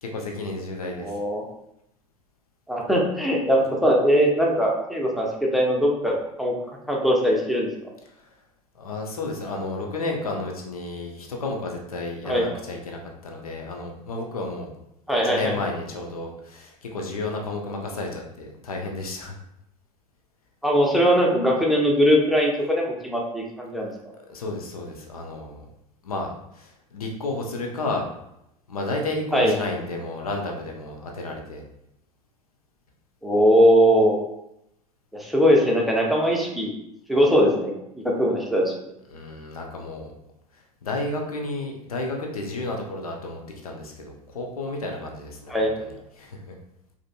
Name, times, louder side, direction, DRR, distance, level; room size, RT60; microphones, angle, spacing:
voice 1, 0.0-1.2 8.7-14.7 15.2-19.4 24.3-25.7 26.0-28.1 28.7-31.6 39.1-40.1 40.5-46.5, left 2 dB, 75° left, 1 dB, 0.6 m, -32 dB
voice 2, 1.0-1.4 2.7-6.5 6.9-7.7 12.2-12.5 15.1-15.6 20.6-23.9 29.3-29.5 33.2-34.2 35.1-36.7 37.1-38.7 45.5-45.7, equal, ahead, -1 dB, 0.7 m, -20 dB
4.9 x 2.8 x 2.2 m, 0.81 s
figure-of-eight pair, 75°, 19 cm